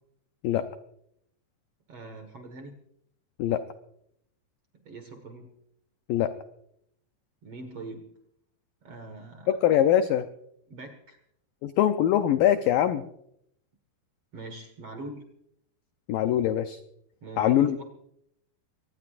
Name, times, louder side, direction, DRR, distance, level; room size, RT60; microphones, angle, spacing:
voice 1, 1.9-2.8 4.8-5.5 7.4-8.1 8.8-9.6 10.7-11.2 14.3-15.2 17.2-17.8, right 2 dB, 55° right, 5 dB, 1.8 m, -42 dB
voice 2, 9.5-10.3 11.6-13.1 16.1-16.8 17.4-17.8, left 11 dB, 90° left, 8 dB, 1.9 m, -23 dB
24.5 x 19.0 x 2.5 m, 0.74 s
omnidirectional pair, 4.9 m